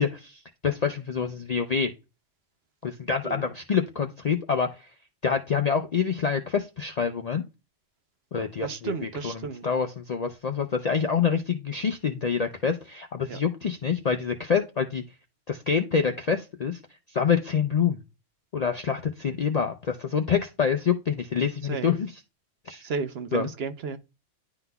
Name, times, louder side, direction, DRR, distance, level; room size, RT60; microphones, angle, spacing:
voice 1, 0.0-1.9 2.8-4.9 5.2-7.4 8.3-9.3 9.6-15.0 15.5-16.8 17.1-18.0 18.5-22.1 22.7-22.8 23.3-23.5, left 6 dB, 55° left, 0.4 m, -26 dB
voice 2, 8.6-9.7 13.3-13.4 21.6-21.9 22.8-24.0, right 5 dB, 60° right, 0.9 m, -33 dB
11.0 x 3.8 x 2.2 m
omnidirectional pair, 1.3 m